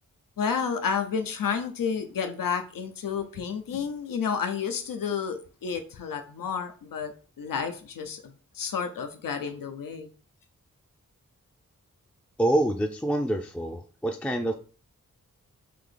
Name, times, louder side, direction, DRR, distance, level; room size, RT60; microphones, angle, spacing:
voice 1, 0.4-10.1, left 6 dB, 85° left, 0.6 m, -31 dB
voice 2, 12.4-14.5, right 1 dB, 5° left, 0.4 m, -26 dB
3.5 x 2.8 x 3.8 m
cardioid pair, 60°, 33 cm